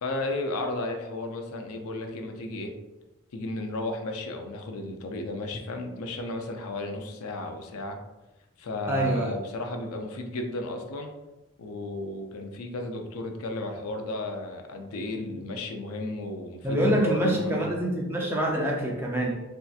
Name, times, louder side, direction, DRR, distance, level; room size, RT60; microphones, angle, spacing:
voice 1, 0.0-2.7 3.3-8.0 8.6-11.1 11.6-17.7, left 2 dB, 90° left, 4 dB, 0.4 m, -33 dB
voice 2, 8.9-9.3 16.6-19.3, right 1 dB, 10° right, -2 dB, 0.4 m, -26 dB
3.2 x 2.8 x 2.3 m, 1.0 s
head